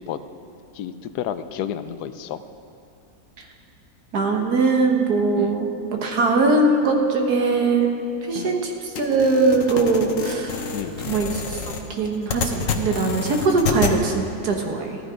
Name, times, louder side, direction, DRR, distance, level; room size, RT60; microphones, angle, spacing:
voice 1, 0.7-2.4 5.4-5.5 8.3-8.6 10.7-11.0, left 9 dB, 90° left, 12 dB, 1.2 m, -31 dB
voice 2, 4.1-7.9 8.2-10.7 11.1-11.6 11.9-15.0, right 3 dB, 75° right, 2 dB, 1.8 m, -21 dB
sound 1, 9.0-14.0, left 6 dB, 60° left, 1.2 m, -28 dB
14.5 x 11.5 x 5.0 m, 2.6 s
omnidirectional pair, 1.7 m